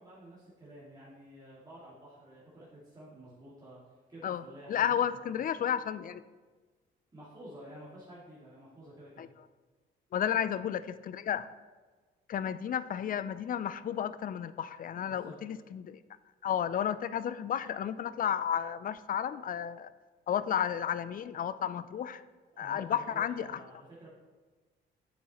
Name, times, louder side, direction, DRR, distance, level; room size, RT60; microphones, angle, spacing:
voice 1, 0.0-4.9 5.2-5.4 7.1-9.3 15.1-15.3 22.5-24.1, right 1 dB, 20° right, -9 dB, 2.4 m, -51 dB
voice 2, 4.7-6.2 9.2-9.3 10.1-11.5 12.3-16.0 16.4-19.9 20.3-22.2 22.6-23.6, left 9 dB, 45° left, 15 dB, 0.4 m, -32 dB
8.5 x 7.0 x 3.0 m, 1.3 s
cardioid pair, 90°, 20 cm